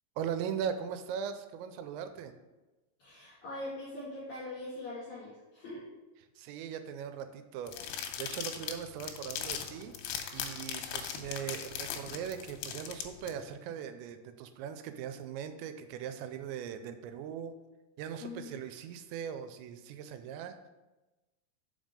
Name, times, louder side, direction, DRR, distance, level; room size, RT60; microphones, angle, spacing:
voice 1, 0.2-2.3 6.4-10.0 10.3-17.6 18.0-20.6, right 8 dB, 85° right, 9 dB, 2.8 m, -39 dB
voice 2, 3.0-5.8 18.2-18.5, left 2 dB, 60° left, -6 dB, 2.0 m, -42 dB
sound 1, 7.7-13.3, left 9 dB, 90° left, 3.0 m, -39 dB
5.6 x 5.3 x 5.1 m, 1.1 s
omnidirectional pair, 5.2 m